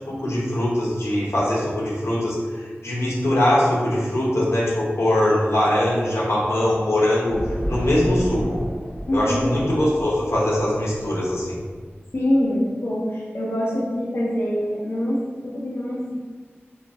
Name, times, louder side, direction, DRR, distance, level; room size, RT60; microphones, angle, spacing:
voice 1, 0.1-7.4 7.7-8.6 9.1-11.6, left 1 dB, 85° left, -6 dB, 0.9 m, -22 dB
sound 1, 7.3-12.2, equal, 25° left, 1.2 m, -32 dB
voice 2, 9.1-9.5 12.1-16.2, left 1 dB, 60° left, -6 dB, 0.7 m, -24 dB
2.8 x 2.7 x 3.6 m, 1.5 s
wide cardioid pair, 60°, 4 cm